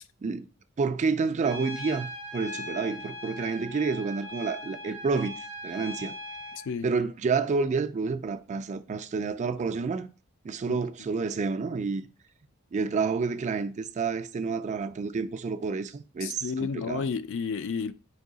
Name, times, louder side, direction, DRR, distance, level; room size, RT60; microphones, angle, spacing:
voice 1, 0.8-6.1 6.8-10.1 10.4-12.1 12.7-17.1, right 4 dB, 35° right, 0.3 m, -29 dB
Trumpet, 1.4-6.6, left 1 dB, 80° left, 2.2 m, -39 dB
voice 2, 16.2-17.9, left 5 dB, 60° left, 0.4 m, -31 dB
4.7 x 2.7 x 3.8 m
head